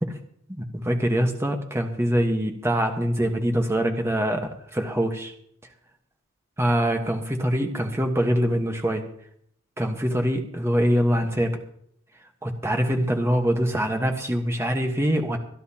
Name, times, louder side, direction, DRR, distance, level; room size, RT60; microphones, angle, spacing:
voice 1, 0.6-5.3 6.6-9.1 9.8-11.6 12.4-15.4, equal, 10° right, 3 dB, 1.3 m, -24 dB
25.0 x 10.5 x 2.9 m, 0.67 s
head